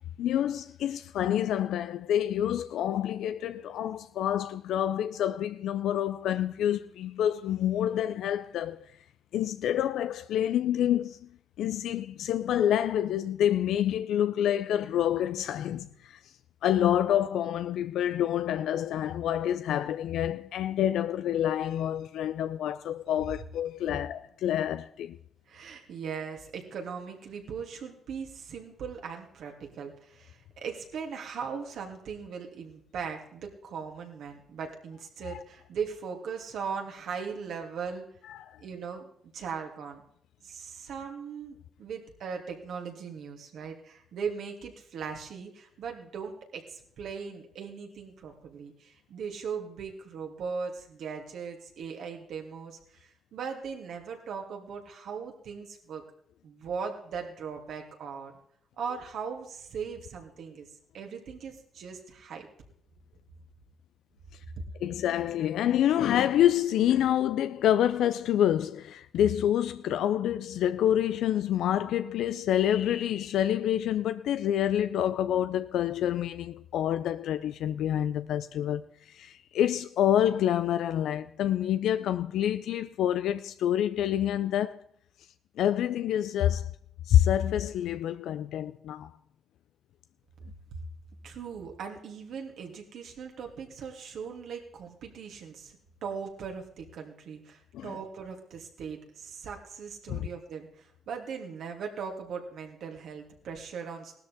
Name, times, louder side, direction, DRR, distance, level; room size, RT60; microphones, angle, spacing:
voice 1, 0.2-8.8 9.3-11.3 11.6-16.2 16.6-25.2 35.2-35.4 38.3-38.6 64.8-84.8 85.6-86.7 87.1-89.1 97.7-98.0 100.1-100.3, left 11 dB, 80° left, 0.5 m, -27 dB
voice 2, 25.5-38.1 38.6-39.1 39.3-40.0 40.4-56.0 56.4-58.3 58.8-60.7 60.9-62.5 91.2-104.2, right 6 dB, 70° right, 2.8 m, -39 dB
17.0 x 13.0 x 3.6 m
cardioid pair, 90°, 0 cm